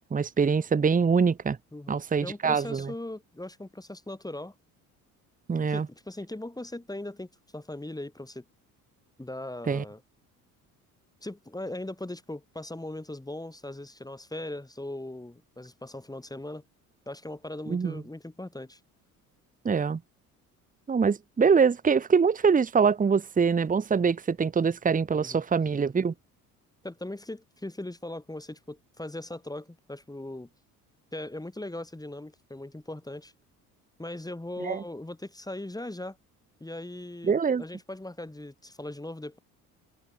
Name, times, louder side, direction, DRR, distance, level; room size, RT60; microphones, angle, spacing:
voice 1, 0.1-1.6 1.9-2.9 5.5-5.9 9.7-9.8 17.7-18.0 19.6-20.0 20.9-26.1 34.6-34.8 37.2-37.6, right 5 dB, 20° right, 1.2 m, -24 dB
voice 2, 1.7-4.5 5.7-8.4 9.2-10.0 11.2-16.6 17.1-18.8 25.1-25.4 26.8-30.5 31.1-33.3 34.0-36.2 36.6-39.4, left 1 dB, 10° left, 4.5 m, -39 dB
figure-of-eight pair, 55°, 45 cm